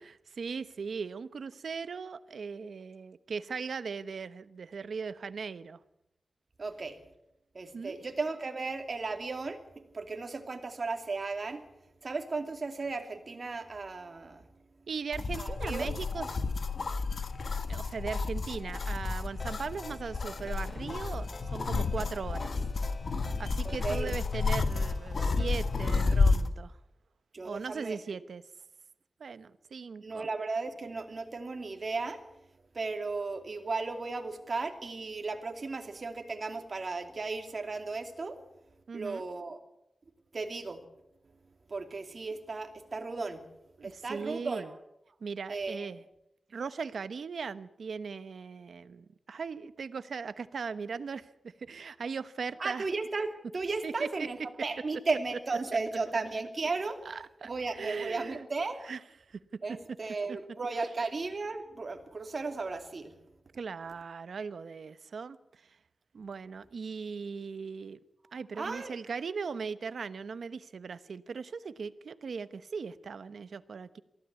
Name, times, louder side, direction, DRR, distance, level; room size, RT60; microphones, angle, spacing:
voice 1, 0.0-5.8 7.7-8.0 14.9-16.3 17.7-22.6 23.4-26.8 27.4-28.4 29.2-30.3 38.9-39.2 43.8-44.7 45.2-46.0 46.5-52.9 53.8-54.3 57.0-58.5 58.8-59.0 59.3-59.4 59.7-59.8 60.3-60.4 63.6-65.4 66.1-68.0 68.3-74.0, right 5 dB, 80° right, 14 dB, 1.0 m, -39 dB
voice 2, 6.6-7.0 7.5-11.6 12.0-14.4 15.4-15.9 23.8-24.1 27.3-28.0 30.0-32.2 32.7-38.4 38.9-39.6 40.3-40.8 41.7-43.4 43.8-44.7 45.5-45.9 52.6-57.0 57.4-58.8 59.6-63.1 68.6-68.9, right 3 dB, 45° right, 5 dB, 2.7 m, -35 dB
sound 1, 15.1-26.5, left 4 dB, 55° left, 1.5 m, -31 dB
Ringtone, 19.4-26.3, left 2 dB, 30° left, 1.8 m, -50 dB
23.5 x 15.5 x 8.3 m, 0.84 s
wide cardioid pair, 120°, 0 cm